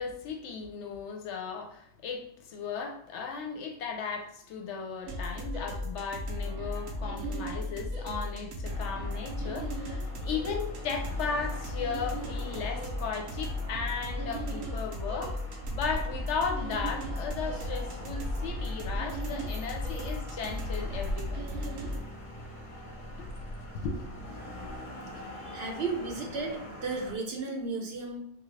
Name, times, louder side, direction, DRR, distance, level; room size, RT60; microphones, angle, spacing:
voice 1, 0.0-15.4 15.7-21.4 23.2-23.3 23.8-24.0, left 5 dB, 70° left, 3 dB, 0.8 m, -36 dB
sound 1, 5.0-22.0, left 1 dB, 85° right, 1.1 m, -36 dB
sound 2, 8.7-27.1, equal, 40° left, 0.5 m, -42 dB
voice 2, 25.4-28.2, right 3 dB, 60° right, 1 dB, 0.8 m, -34 dB
3.5 x 2.4 x 3.2 m, 0.73 s
omnidirectional pair, 1.3 m